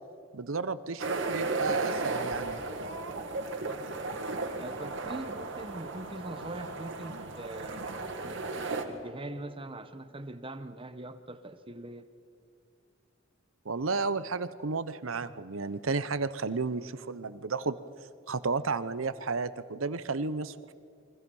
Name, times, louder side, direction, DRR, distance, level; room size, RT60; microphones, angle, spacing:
voice 1, 0.3-2.6 13.6-17.8 18.3-20.7, right 4 dB, 90° right, 14 dB, 0.9 m, -32 dB
sound 1, 1.0-8.8, right 3 dB, 65° right, 2.3 m, -35 dB
voice 2, 4.6-7.9 8.2-12.1, right 1 dB, 25° right, 9 dB, 1.1 m, -42 dB
29.0 x 23.5 x 5.6 m, 2.2 s
head